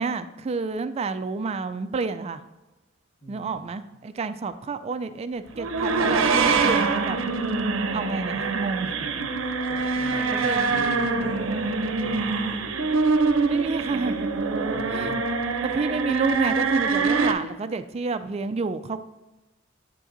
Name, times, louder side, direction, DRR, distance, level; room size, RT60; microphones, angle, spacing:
voice 1, 0.0-2.4 3.3-7.2 7.9-8.9 10.1-10.8 11.5-11.7 13.5-14.3 14.9-15.2 15.6-19.0, right 4 dB, 30° right, 11 dB, 0.3 m, -30 dB
voice 2, 3.2-3.6 9.0-12.6 14.7-15.4, equal, 60° left, -8 dB, 1.9 m, -39 dB
sound 1, 5.5-17.3, right 4 dB, 80° right, 0.6 m, -24 dB
8.7 x 7.5 x 2.6 m, 1.1 s
head